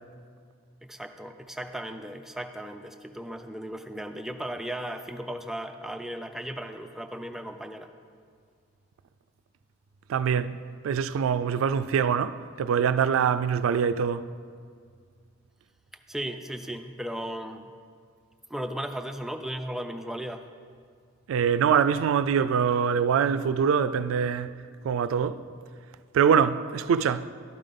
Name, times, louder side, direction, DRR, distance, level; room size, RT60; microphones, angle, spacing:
voice 1, 0.8-7.9 16.1-17.7 18.5-20.4, right 1 dB, ahead, 0.3 m, -36 dB
voice 2, 10.1-10.6 10.8-14.3 21.3-24.6 24.8-25.4 26.1-27.3, right 7 dB, 85° right, 0.3 m, -24 dB
12.0 x 5.3 x 3.7 m
head